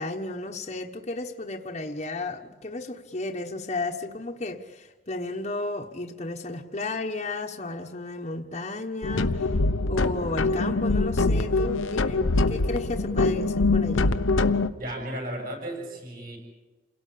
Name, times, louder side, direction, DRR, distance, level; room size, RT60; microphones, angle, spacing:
voice 1, 0.0-9.5 9.9-14.1, left 2 dB, 35° left, 1 dB, 1.2 m, -33 dB
sound 1, 9.0-14.7, left 3 dB, 85° left, 1.0 m, -24 dB
voice 2, 14.8-16.4, right 1 dB, 45° right, 3 dB, 6.8 m, -34 dB
28.5 x 18.0 x 8.7 m, 1.2 s
head